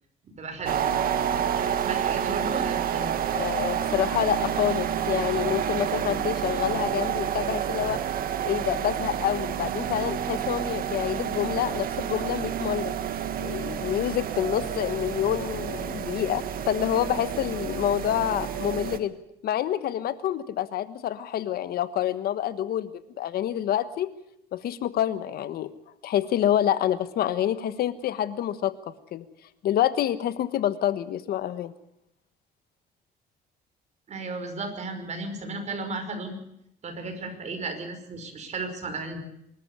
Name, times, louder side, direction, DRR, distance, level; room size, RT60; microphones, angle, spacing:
voice 1, 0.4-0.8 1.4-3.2 34.1-36.4 36.8-39.3, right 3 dB, 45° right, 6 dB, 5.4 m, -35 dB
sound 1, 0.7-19.0, right 9 dB, 60° right, 1.7 m, -29 dB
voice 2, 3.3-8.0 8.4-12.9 13.4-19.2 19.4-22.9 23.2-24.1 24.5-25.7 26.0-28.7 29.1-29.2 29.6-31.7, left 11 dB, 65° left, 13 dB, 1.3 m, -27 dB
24.5 x 13.5 x 9.7 m, 0.78 s
cardioid pair, 110°, 17 cm